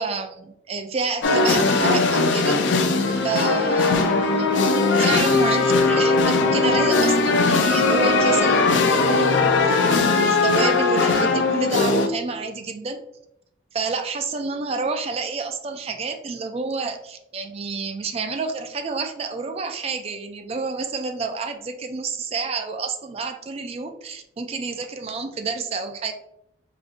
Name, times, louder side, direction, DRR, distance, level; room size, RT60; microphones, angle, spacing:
voice 1, 0.0-2.6 3.2-4.6 4.9-13.0 13.7-26.1, right 4 dB, 35° right, 6 dB, 0.3 m, -29 dB
sound 1, 1.2-12.1, left 3 dB, 75° left, 0.4 m, -19 dB
4.9 x 2.6 x 2.4 m, 0.80 s
head